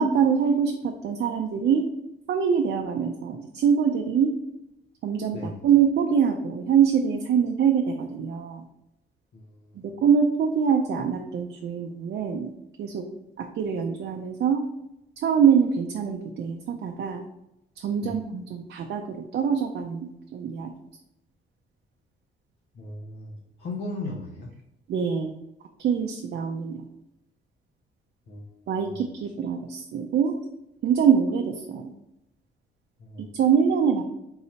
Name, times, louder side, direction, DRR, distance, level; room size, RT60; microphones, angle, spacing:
voice 1, 0.0-1.8 2.3-4.3 5.0-8.6 9.8-12.5 12.8-13.0 13.4-14.6 15.2-17.2 17.8-20.7 24.9-25.3 25.8-26.8 28.7-30.3 30.8-31.9 33.3-34.0, right 7 dB, 55° right, 3 dB, 0.5 m, -24 dB
voice 2, 9.3-10.0 18.0-18.2 22.7-24.5 28.3-28.5 28.9-29.0 33.0-33.4, left 2 dB, 60° left, -1 dB, 0.8 m, -37 dB
3.9 x 2.9 x 4.2 m, 0.87 s
cardioid pair, 90°, 20 cm